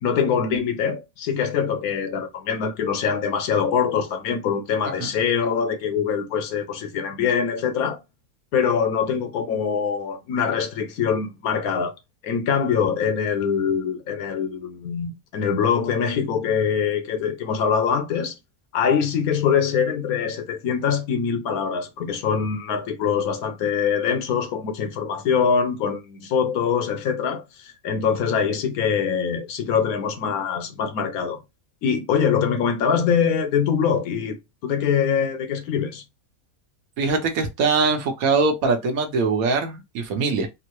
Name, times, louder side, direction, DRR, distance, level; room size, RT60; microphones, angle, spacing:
voice 1, 0.0-8.0 8.5-11.9 12.2-18.4 18.7-31.4 31.8-34.4 34.6-36.0, left 7 dB, 80° left, 1.2 m, -23 dB
voice 2, 37.0-40.5, right 4 dB, 75° right, 1.2 m, -22 dB
3.6 x 2.0 x 3.0 m
omnidirectional pair, 1.6 m